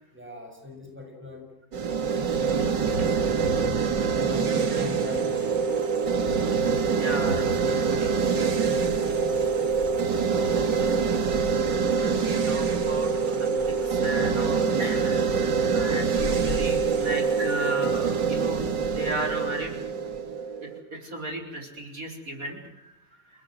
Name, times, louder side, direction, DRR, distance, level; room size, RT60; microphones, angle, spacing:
voice 1, 0.1-1.5 1.8-3.8 4.1-5.8 15.8-16.0, left 2 dB, 5° right, 2 dB, 6.8 m, -41 dB
sound 1, 1.7-20.8, right 5 dB, 75° right, 2.6 m, -25 dB
Thunder / Rain, 2.9-12.9, left 2 dB, 75° left, 4.8 m, -42 dB
voice 2, 7.0-8.1 10.3-11.1 11.9-13.6 13.8-15.3 15.7-18.6 18.9-19.7 20.9-22.9, right 2 dB, 50° right, 2 dB, 5.1 m, -35 dB
sound 2, 13.4-20.2, left 1 dB, 45° left, 6.6 m, -45 dB
30.0 x 18.5 x 7.8 m, 0.86 s
omnidirectional pair, 1.9 m